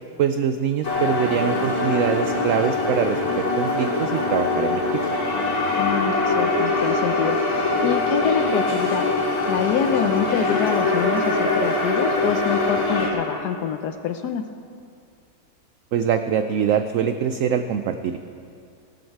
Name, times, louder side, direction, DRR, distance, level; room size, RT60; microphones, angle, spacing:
voice 1, 0.2-4.8 15.9-18.2, right 8 dB, 75° right, 9 dB, 0.7 m, -23 dB
sound 1, 0.8-13.1, left 2 dB, 55° left, 3.1 m, -23 dB
voice 2, 5.8-9.1 9.5-14.4, left 8 dB, 75° left, 8 dB, 1.1 m, -26 dB
16.5 x 13.0 x 4.6 m, 2.4 s
omnidirectional pair, 1.9 m